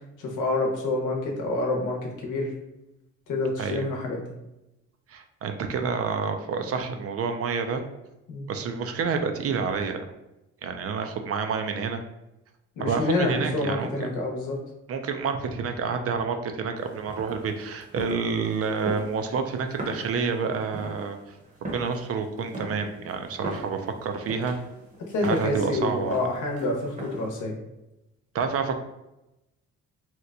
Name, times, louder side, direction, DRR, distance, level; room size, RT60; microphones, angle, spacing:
voice 1, 0.2-2.5 3.3-4.2 8.3-8.5 12.8-14.6 25.1-27.5, left 2 dB, 80° left, 1 dB, 0.9 m, -27 dB
voice 2, 5.1-7.8 8.5-10.1 10.6-12.0 12.8-14.1 14.9-24.6 25.2-26.3 28.3-28.7, right 5 dB, 50° right, 6 dB, 0.4 m, -29 dB
sound 1, 16.8-27.4, right 1 dB, 25° right, 0.8 m, -40 dB
2.8 x 2.2 x 3.7 m, 0.93 s
cardioid pair, 90°, 30 cm